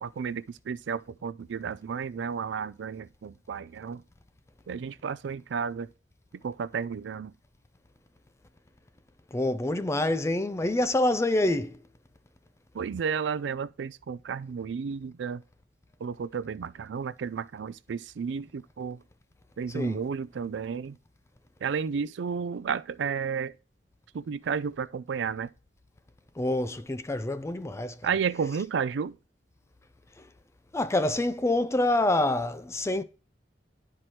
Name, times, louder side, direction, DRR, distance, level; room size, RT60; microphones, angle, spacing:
voice 1, 0.0-4.0 4.7-5.9 6.4-7.3 12.7-15.4 16.0-19.0 19.6-21.0 21.6-23.5 24.1-25.5 28.0-29.2, right 6 dB, 75° right, 0.4 m, -32 dB
voice 2, 9.3-11.8 19.7-20.0 26.4-28.0 30.2-30.3 30.7-33.0, left 1 dB, 15° left, 0.4 m, -26 dB
11.5 x 4.6 x 2.9 m
head